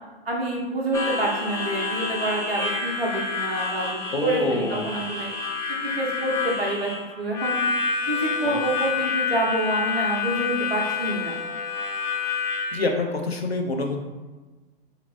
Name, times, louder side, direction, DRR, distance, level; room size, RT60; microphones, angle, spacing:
voice 1, 0.2-5.3 6.0-6.9 7.2-7.6 8.1-11.4, right 2 dB, 80° right, -2 dB, 1.0 m, -27 dB
Harmonica, 0.9-12.8, left 5 dB, 10° left, 0.3 m, -28 dB
voice 2, 4.1-4.9 8.4-8.6 12.7-14.0, left 3 dB, 90° left, 2 dB, 0.7 m, -26 dB
5.2 x 2.9 x 2.6 m, 1.2 s
figure-of-eight pair, 105°, 30 cm